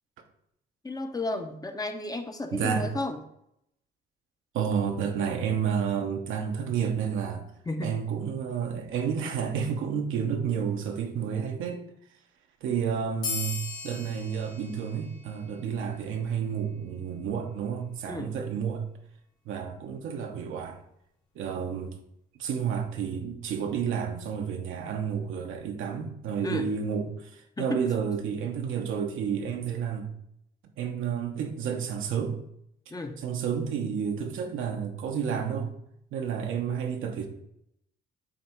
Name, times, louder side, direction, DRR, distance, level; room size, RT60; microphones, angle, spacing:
voice 1, 0.8-3.2 7.7-7.9 18.1-18.3 26.4-26.7 27.6-27.9 32.9-33.2, left 2 dB, 20° left, 6 dB, 0.8 m, -33 dB
voice 2, 2.5-2.9 4.5-7.5 7.8-11.8 12.6-18.8 19.5-20.8 21.3-21.9 22.3-30.1 30.8-32.4 33.2-35.7 36.1-37.3, right 7 dB, 85° right, 3 dB, 1.1 m, -30 dB
sound 1, 13.2-16.3, left 5 dB, 85° left, 2.5 m, -38 dB
8.4 x 3.2 x 4.5 m, 0.76 s
cardioid pair, 90°, 20 cm